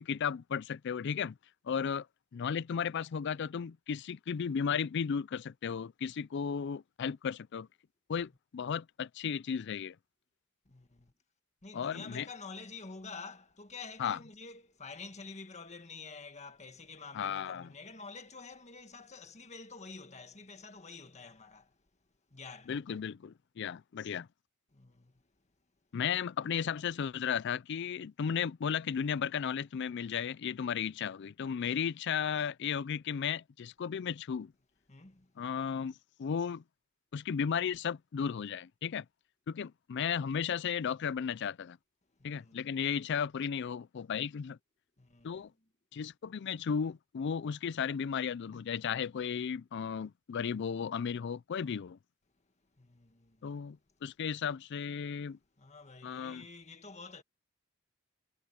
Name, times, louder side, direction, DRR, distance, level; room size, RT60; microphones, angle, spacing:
voice 1, 0.0-1.4 1.6-2.1 2.3-7.7 8.1-10.0 11.7-12.3 14.0-14.2 17.1-17.7 22.7-24.3 25.9-34.5 35.4-36.6 37.1-39.1 39.5-41.8 42.2-44.6 45.2-45.5 45.9-52.0 53.4-55.4 56.0-56.5, left 7 dB, 50° left, 0.4 m, -35 dB
voice 2, 10.6-11.1 11.6-21.8 22.3-22.8 24.7-25.2 31.6-31.8 34.9-35.3 42.2-42.7 45.0-45.5 52.8-53.6 55.6-57.2, left 4 dB, 30° left, 1.7 m, -49 dB
head